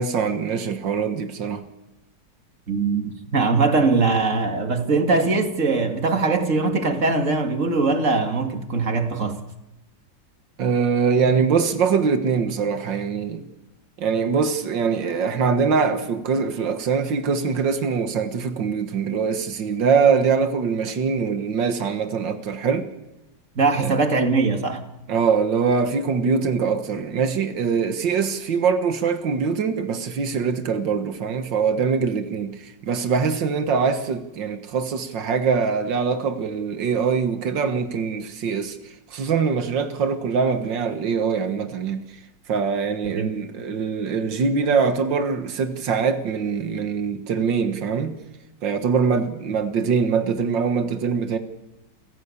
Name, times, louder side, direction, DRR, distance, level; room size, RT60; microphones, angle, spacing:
voice 1, 0.0-1.6 10.6-13.4 14.0-22.9 23.8-24.0 25.1-38.8 39.1-42.1 42.5-48.2 48.6-51.4, right 5 dB, 85° right, 2.1 m, -23 dB
voice 2, 2.7-9.4 23.6-24.8 43.2-43.3, right 3 dB, 45° right, 2.3 m, -21 dB
28.5 x 17.0 x 8.4 m
omnidirectional pair, 1.9 m